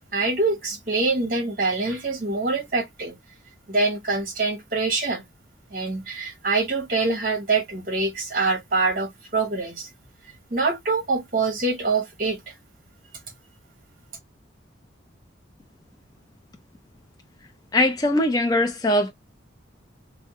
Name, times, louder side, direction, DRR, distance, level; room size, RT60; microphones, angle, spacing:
voice 1, 0.1-3.2 3.7-5.2 5.7-9.9 10.5-12.4, right 3 dB, 45° right, 1.0 m, -25 dB
voice 2, 17.7-19.1, left 1 dB, 20° left, 0.4 m, -21 dB
3.3 x 2.1 x 2.7 m
head